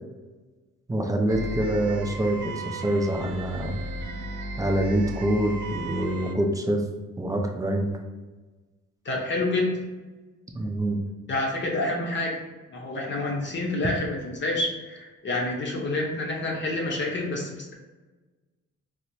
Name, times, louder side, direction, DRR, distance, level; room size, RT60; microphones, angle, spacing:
voice 1, 0.9-3.8 4.6-6.8 7.2-7.9 10.5-11.0, right 1 dB, 10° right, 2 dB, 0.5 m, -25 dB
sound 1, 1.3-6.4, right 1 dB, 80° right, 0.5 m, -35 dB
voice 2, 9.0-9.8 11.3-12.4 12.7-17.7, left 2 dB, 40° left, -2 dB, 0.7 m, -28 dB
4.3 x 2.0 x 2.7 m, 1.2 s
cardioid pair, 90°, 30 cm